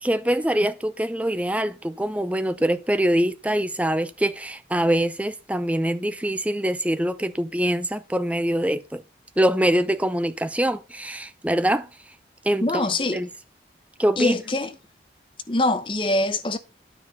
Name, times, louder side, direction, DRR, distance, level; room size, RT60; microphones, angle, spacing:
voice 1, 0.0-9.0 9.4-11.9 12.4-12.9 13.1-13.3 14.0-14.4, right 1 dB, 10° right, 0.6 m, -24 dB
voice 2, 12.6-13.2 14.2-14.7 15.5-16.6, left 2 dB, 30° left, 0.9 m, -23 dB
9.7 x 4.3 x 6.7 m
head